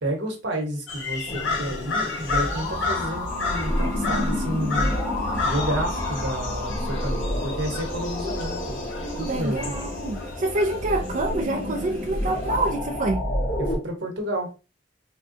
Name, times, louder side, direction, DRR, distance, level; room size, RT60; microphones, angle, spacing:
voice 1, 0.0-5.0 5.4-8.8 9.2-9.7 13.6-14.5, right 1 dB, 75° right, 1.0 m, -30 dB
sound 1, 0.9-12.7, left 4 dB, 90° left, 0.6 m, -33 dB
sound 2, 1.3-13.8, left 1 dB, 45° left, 1.1 m, -29 dB
sound 3, 3.3-13.0, left 2 dB, 10° left, 0.8 m, -41 dB
voice 2, 9.0-13.3, right 2 dB, 45° right, 0.3 m, -27 dB
3.5 x 2.2 x 2.5 m
head